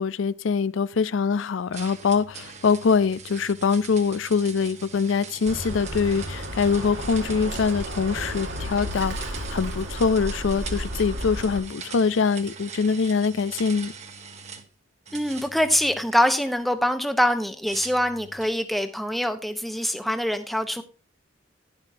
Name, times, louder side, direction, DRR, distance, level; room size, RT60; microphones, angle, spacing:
voice 1, 0.0-13.9, left 5 dB, 75° left, 0.4 m, -24 dB
sound 1, 1.7-14.7 15.1-16.6 17.7-18.6, right 5 dB, 35° right, 1.2 m, -42 dB
Bird, 5.4-11.6, equal, 65° right, 2.2 m, -33 dB
voice 2, 15.1-20.8, equal, ahead, 0.9 m, -24 dB
11.5 x 10.5 x 2.8 m
head